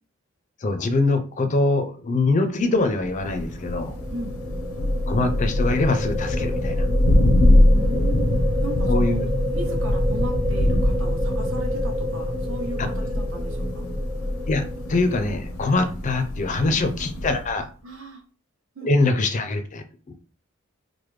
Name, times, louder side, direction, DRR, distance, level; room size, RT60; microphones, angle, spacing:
voice 1, 0.6-3.9 5.1-6.9 8.9-9.3 14.5-14.6 14.9-17.7 18.8-20.1, left 2 dB, 35° left, 8 dB, 0.4 m, -23 dB
Thunder, 3.0-17.6, left 1 dB, 85° left, 0.5 m, -24 dB
sound 1, 3.5-15.7, equal, 25° right, 0.7 m, -28 dB
voice 2, 7.6-9.2 9.5-13.9 16.6-16.8 17.8-18.2 18.7-19.1, right 3 dB, 65° right, 2 dB, 0.8 m, -37 dB
3.2 x 2.1 x 3.1 m, 0.38 s
head